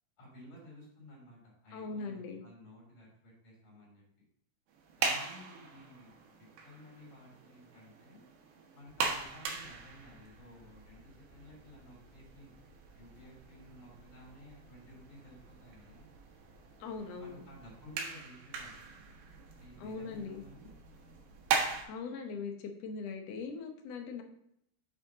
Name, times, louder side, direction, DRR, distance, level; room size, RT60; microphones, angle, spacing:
voice 1, 0.2-4.0 5.0-8.2 8.7-12.5 12.9-16.1 17.1-18.7 19.6-20.7, equal, 50° left, -4 dB, 4.4 m, -54 dB
voice 2, 1.7-2.4 16.8-17.4 19.8-20.4 21.9-24.2, left 4 dB, 75° left, 4 dB, 1.5 m, -40 dB
sound 1, 4.7-21.8, right 5 dB, 85° right, 3.1 m, -40 dB
7.9 x 5.7 x 3.8 m, 0.74 s
omnidirectional pair, 4.2 m